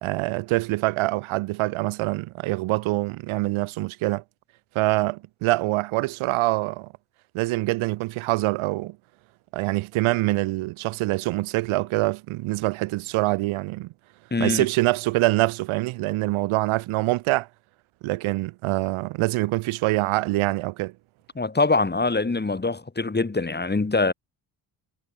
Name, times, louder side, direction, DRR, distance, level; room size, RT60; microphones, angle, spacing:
voice 1, 0.0-4.2 4.8-6.9 7.3-9.0 9.5-13.9 14.4-17.5 18.0-20.9, right 20 dB, 85° right, 2.0 m, -25 dB
voice 2, 14.3-14.7 21.3-24.1, left 3 dB, 20° left, 2.9 m, -23 dB
supercardioid pair, 60°, 48 cm